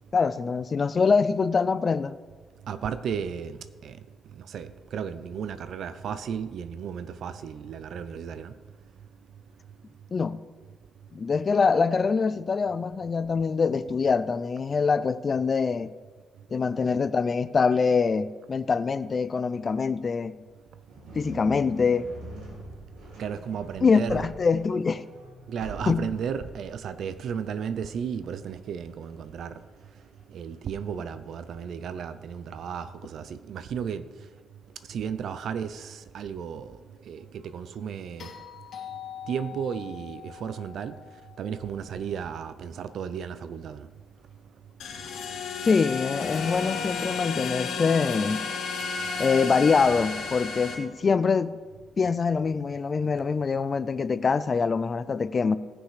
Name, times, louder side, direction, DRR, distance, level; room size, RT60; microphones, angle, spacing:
voice 1, 0.1-2.2 10.1-10.4 11.1-15.9 16.5-20.3 21.1-22.1 23.8-25.0 25.9-26.1 45.6-48.4 49.2-51.6 52.0-55.6, left 5 dB, 40° left, 0.5 m, -24 dB
voice 2, 2.7-4.0 4.4-8.5 23.2-24.3 25.5-29.6 30.3-34.0 34.9-36.8 37.1-38.3 39.3-41.0 41.4-43.9, right 7 dB, 70° right, 0.7 m, -34 dB
sound 1, 20.9-32.0, right 2 dB, 85° right, 3.0 m, -46 dB
sound 2, 38.2-42.5 44.7-44.8, left 9 dB, 70° left, 2.3 m, -44 dB
sound 3, 44.8-50.7, left 4 dB, 85° left, 2.3 m, -32 dB
18.5 x 6.3 x 5.0 m
cardioid pair, 90°, 0 cm